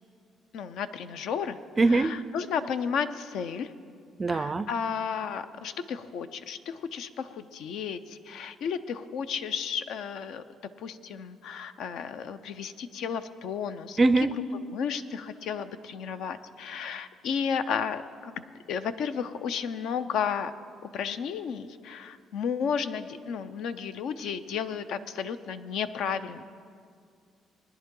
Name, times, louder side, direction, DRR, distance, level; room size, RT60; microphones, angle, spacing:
voice 1, 0.5-1.6 1.9-3.7 4.3-10.4 10.8-14.0 14.7-20.5 20.9-26.4, left 7 dB, 75° left, 11 dB, 0.6 m, -33 dB
voice 2, 1.8-2.2 4.2-4.7 14.0-14.3, right 3 dB, 25° right, 15 dB, 0.4 m, -22 dB
19.5 x 10.5 x 3.8 m, 2.2 s
cardioid pair, 110°, 0 cm